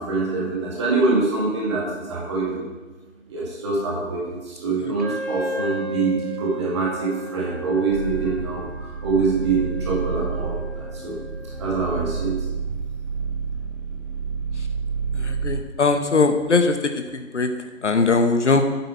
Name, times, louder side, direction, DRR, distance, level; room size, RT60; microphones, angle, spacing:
voice 1, 0.0-2.6 3.3-11.2 11.6-12.4, right 3 dB, 20° right, -4 dB, 2.0 m, -24 dB
Wind instrument woodwind instrument, 5.0-12.3, equal, 40° right, 1.4 m, -36 dB
sound 1, 7.9-15.6, right 6 dB, 70° right, 1.3 m, -29 dB
voice 2, 15.2-16.8 17.1-17.5 17.8-18.6, left 4 dB, 60° left, 7 dB, 0.9 m, -20 dB
8.3 x 7.8 x 4.4 m, 1.2 s
figure-of-eight pair, 160°, 40 cm